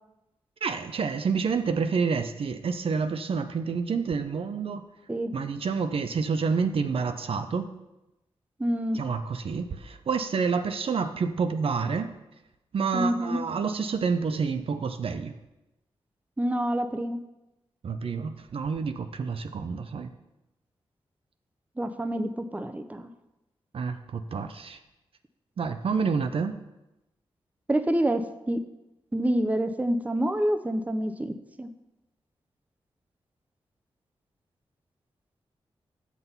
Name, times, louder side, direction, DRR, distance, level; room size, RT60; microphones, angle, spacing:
voice 1, 0.6-4.8 5.3-7.7 8.9-12.1 12.7-15.3 17.8-20.1 23.7-24.8 25.6-26.6, right 5 dB, 65° right, 8 dB, 0.5 m, -28 dB
voice 2, 8.6-9.0 12.9-13.4 16.4-17.2 21.8-23.1 27.7-28.6 29.1-31.7, right 1 dB, 15° right, 9 dB, 0.6 m, -27 dB
7.2 x 6.0 x 5.5 m, 0.96 s
cardioid pair, 80°, 10 cm